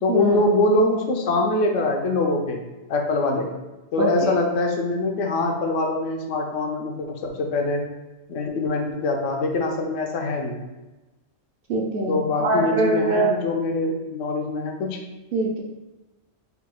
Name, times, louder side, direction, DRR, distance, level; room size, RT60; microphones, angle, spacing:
voice 1, 0.0-2.6 2.9-3.5 3.9-7.8 8.3-10.6 12.1-15.0, left 2 dB, 85° left, 2 dB, 1.0 m, -23 dB
voice 2, 11.7-13.4 15.3-15.6, right 2 dB, 55° right, -1 dB, 0.7 m, -23 dB
3.9 x 2.3 x 4.4 m, 1.1 s
omnidirectional pair, 1.3 m